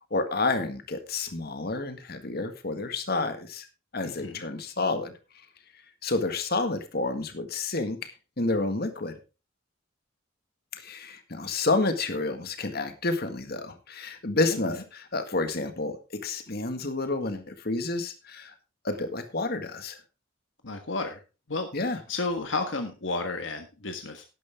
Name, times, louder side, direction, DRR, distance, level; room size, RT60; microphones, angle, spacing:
voice 1, 0.1-3.7 3.9-5.1 6.0-9.2 10.7-18.5 18.8-20.0 21.7-22.0, left 3 dB, 50° left, 8 dB, 1.8 m, -30 dB
voice 2, 4.0-4.4 14.7-14.8 20.6-21.2 21.5-24.2, left 3 dB, 70° left, 6 dB, 1.4 m, -32 dB
12.0 x 11.0 x 3.6 m, 0.31 s
head